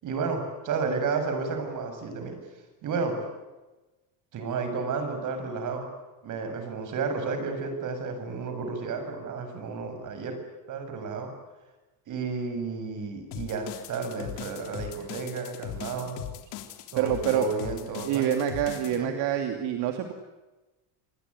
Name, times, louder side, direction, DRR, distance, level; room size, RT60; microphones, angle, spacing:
voice 1, 0.0-2.4 2.8-3.2 4.3-5.9 6.2-10.4 10.7-11.3 12.1-16.3 16.9-18.3 19.0-19.1, right 4 dB, 45° right, 6 dB, 7.2 m, -32 dB
sound 1, 13.3-19.0, left 10 dB, 65° left, 3.7 m, -39 dB
voice 2, 17.0-17.5 18.0-20.1, right 10 dB, 70° right, 5 dB, 2.8 m, -26 dB
27.5 x 20.5 x 9.7 m, 1.1 s
cardioid pair, 160°, 43 cm